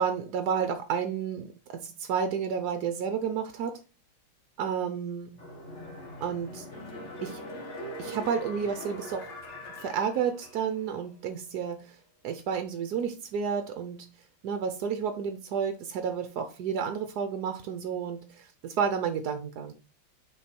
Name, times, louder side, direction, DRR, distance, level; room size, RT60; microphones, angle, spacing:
voice 1, 0.0-3.8 4.6-5.3 6.2-6.7 7.2-7.4 8.0-9.3 9.8-12.0 12.2-14.1 14.4-19.7, right 7 dB, 65° right, 1.0 m, -31 dB
sound 1, 5.3-10.9 11.3-11.4, equal, 35° left, 1.6 m, -42 dB
7.0 x 4.6 x 4.2 m
omnidirectional pair, 2.3 m